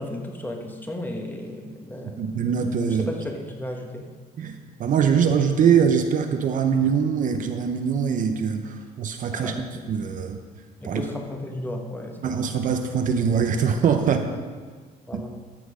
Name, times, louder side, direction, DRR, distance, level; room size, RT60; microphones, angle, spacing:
voice 1, 0.0-2.3 2.9-4.1 9.3-9.8 10.8-12.5 15.1-15.4, left 1 dB, 10° left, 2 dB, 1.3 m, -34 dB
voice 2, 2.2-3.1 4.4-9.5 9.9-10.4 10.8-11.0 12.2-14.2 15.1-15.2, right 7 dB, 50° right, 6 dB, 0.8 m, -23 dB
13.5 x 6.1 x 5.0 m, 1.5 s
cardioid pair, 110°, 17 cm